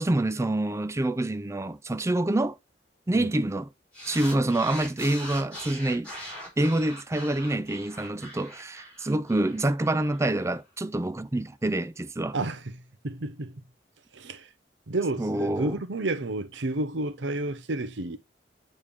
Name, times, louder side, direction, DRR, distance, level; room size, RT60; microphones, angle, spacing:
voice 1, 0.0-2.6 3.1-3.7 4.0-6.1 6.6-12.3 15.2-15.8, right 1 dB, 15° right, 0.4 m, -27 dB
sound 1, 3.9-10.5, equal, 5° left, 3.7 m, -41 dB
voice 2, 12.3-13.6 14.1-14.5 14.9-18.2, right 2 dB, 90° right, 0.9 m, -31 dB
8.6 x 3.4 x 3.6 m
head